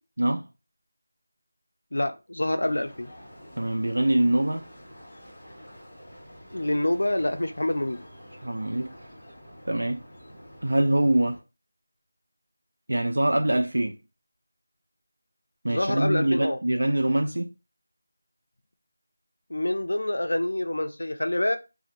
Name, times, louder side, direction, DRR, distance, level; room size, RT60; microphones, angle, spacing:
voice 1, 1.9-3.1 6.5-8.0 15.7-16.6 19.5-21.6, left 1 dB, 80° left, 0.4 m, -26 dB
sound 1, 2.6-11.4, equal, 5° left, 0.7 m, -48 dB
voice 2, 3.6-4.6 8.4-8.9 9.7-10.0 10.6-11.4 12.9-13.9 15.6-17.5, right 1 dB, 75° right, 0.3 m, -24 dB
2.5 x 2.0 x 2.9 m
figure-of-eight pair, 180°, 0 cm